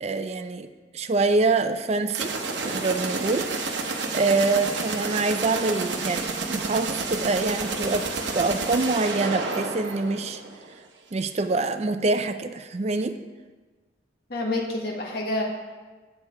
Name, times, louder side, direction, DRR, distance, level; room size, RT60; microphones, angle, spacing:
voice 1, 0.0-2.3 2.6-3.8 4.1-10.4 11.1-13.2, right 3 dB, 35° right, 9 dB, 0.4 m, -25 dB
sound 1, 2.1-10.7, right 3 dB, 70° right, 0.9 m, -30 dB
voice 2, 14.3-15.4, left 2 dB, 60° left, -1 dB, 1.4 m, -28 dB
8.0 x 7.3 x 4.7 m, 1.3 s
head